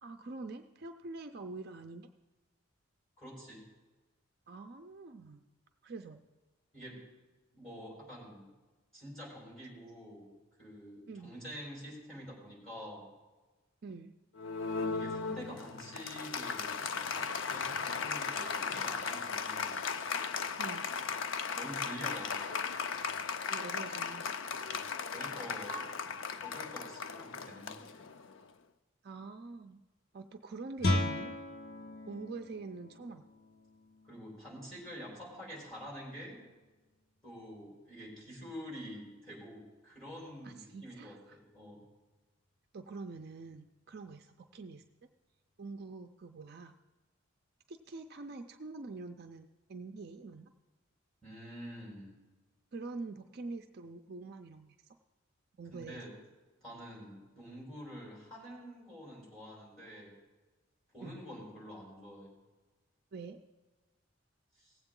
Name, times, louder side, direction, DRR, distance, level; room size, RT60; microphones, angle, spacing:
voice 1, 0.0-2.1 4.5-5.4 5.8-6.2 11.1-11.3 13.8-14.1 20.6-20.9 23.5-24.3 29.0-29.8 30.1-31.3 32.1-33.3 40.4-41.4 42.7-44.8 45.6-46.7 47.7-50.5 52.7-54.8 55.6-56.0 61.0-61.2 63.1-63.4, right 3 dB, 50° right, 6 dB, 0.4 m, -45 dB
voice 2, 3.2-3.6 6.7-7.1 7.5-8.5 8.9-13.1 14.9-19.8 21.5-22.6 24.6-25.9 26.4-28.0 34.0-36.4 37.2-41.8 51.2-52.2 55.7-56.1 56.6-60.2 60.9-62.3 64.6-64.8, equal, 5° left, -5 dB, 4.2 m, -47 dB
Applause, 14.4-28.4, left 5 dB, 70° left, 0.5 m, -37 dB
Guitar, 30.8-36.4, left 1 dB, 45° left, 0.8 m, -38 dB
17.5 x 7.9 x 3.7 m, 1.2 s
head